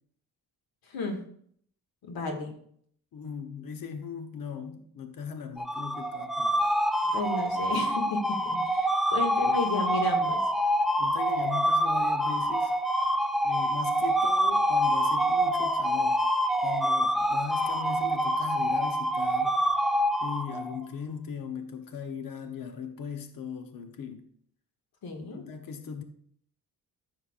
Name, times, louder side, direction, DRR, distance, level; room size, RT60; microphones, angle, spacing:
voice 1, 0.9-1.2 2.0-2.5 7.0-10.4 25.0-25.4, left 3 dB, 90° left, 2.0 m, -33 dB
voice 2, 3.1-6.7 11.0-12.7 13.4-16.2 16.6-19.6 20.2-24.3 25.3-26.0, left 6 dB, 65° left, 1.0 m, -39 dB
sound 1, 5.6-20.8, equal, ahead, 0.4 m, -26 dB
14.0 x 6.6 x 2.5 m
wide cardioid pair, 145°, 36 cm